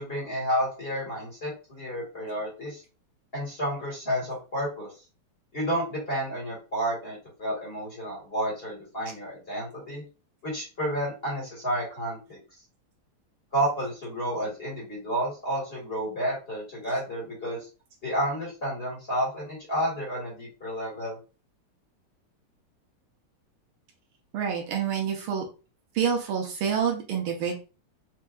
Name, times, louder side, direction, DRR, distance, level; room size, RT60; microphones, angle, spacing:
voice 1, 0.0-2.8 3.3-4.9 5.5-10.0 10.4-12.4 13.5-17.7 18.0-21.2, equal, 30° left, -4 dB, 1.8 m, -31 dB
voice 2, 24.3-25.4 25.9-27.6, right 7 dB, 75° right, 1 dB, 1.7 m, -27 dB
4.7 x 2.7 x 2.3 m, 0.32 s
omnidirectional pair, 2.4 m